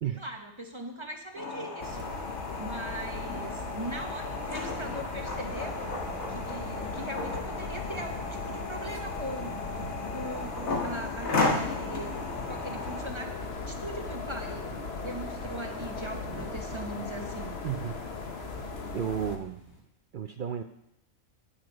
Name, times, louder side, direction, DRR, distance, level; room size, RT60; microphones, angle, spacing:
voice 1, 0.2-2.2 2.6-5.9 6.3-9.7 10.1-12.2 12.5-14.7 15.0-17.5, right 1 dB, 25° right, 3 dB, 0.8 m, -40 dB
sound 1, 1.3-13.0, left 3 dB, 80° left, 2.2 m, -35 dB
sound 2, 1.8-19.4, left 3 dB, 50° left, 1.3 m, -38 dB
sound 3, 5.4-19.8, right 2 dB, 20° left, 2.7 m, -50 dB
voice 2, 17.6-18.0 18.9-19.6 20.1-20.6, right 9 dB, 70° right, 7 dB, 0.4 m, -32 dB
10.0 x 7.7 x 5.1 m, 0.80 s
omnidirectional pair, 1.4 m